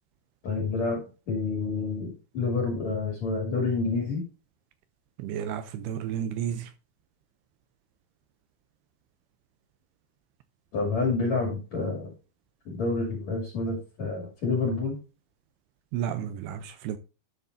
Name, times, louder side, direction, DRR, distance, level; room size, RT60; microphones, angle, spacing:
voice 1, 0.4-1.0 1.3-4.2 10.7-12.1 12.7-15.0, left 3 dB, 45° left, 3.4 m, -28 dB
voice 2, 5.2-6.7 15.9-17.0, right 9 dB, 85° right, 2.4 m, -32 dB
12.5 x 6.6 x 2.6 m
omnidirectional pair, 5.1 m